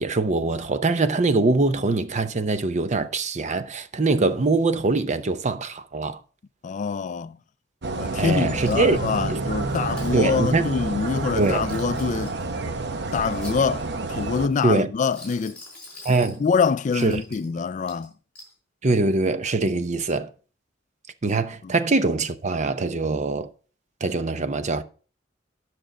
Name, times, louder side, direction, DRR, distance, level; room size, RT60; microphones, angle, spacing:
voice 1, 0.0-6.2 8.2-9.0 9.3-9.4 10.1-10.7 11.4-11.6 14.6-14.9 16.0-16.4 17.0-17.2 18.8-20.3 21.2-23.5 24.0-24.8, right 3 dB, 40° right, 0.7 m, -23 dB
voice 2, 6.6-7.4 8.0-12.4 13.1-15.6 16.4-18.1 19.6-19.8 21.6-21.7, left 5 dB, 40° left, 0.3 m, -25 dB
sound 1, 7.8-14.5, right 3 dB, 60° right, 0.9 m, -29 dB
Coin (dropping), 8.6-9.2 9.7-10.2 11.3-12.4 13.1-14.0 14.9-16.4 17.0-17.5 17.9-18.5, left 2 dB, 5° left, 4.8 m, -45 dB
10.0 x 6.1 x 5.1 m
head